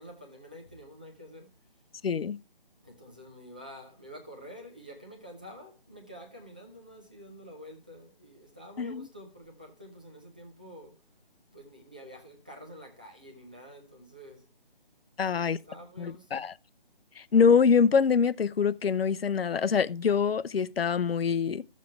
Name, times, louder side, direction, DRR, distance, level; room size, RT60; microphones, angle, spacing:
voice 1, 0.0-1.5 2.8-11.0 11.5-14.5 15.2-16.4, equal, 10° right, 0.5 m, -48 dB
voice 2, 2.0-2.4 8.8-9.1 15.2-15.6 16.0-16.5 17.2-21.6, left 6 dB, 85° left, 0.6 m, -24 dB
12.5 x 7.5 x 3.4 m
hypercardioid pair, 170°, 29 cm